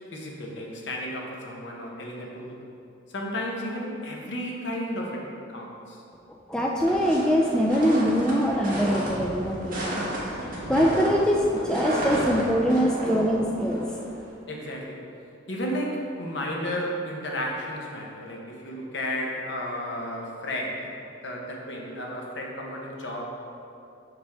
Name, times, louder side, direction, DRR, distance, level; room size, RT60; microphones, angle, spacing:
voice 1, 0.1-2.6 3.1-6.0 14.5-15.0 15.5-21.0 21.2-23.2, equal, 65° left, -1 dB, 0.9 m, -33 dB
voice 2, 6.5-10.0 10.3-10.4 10.7-13.9, equal, 5° left, -2 dB, 0.3 m, -23 dB
sound 1, 6.8-14.3, equal, 45° right, 1.4 m, -32 dB
6.1 x 5.0 x 3.5 m, 2.6 s
head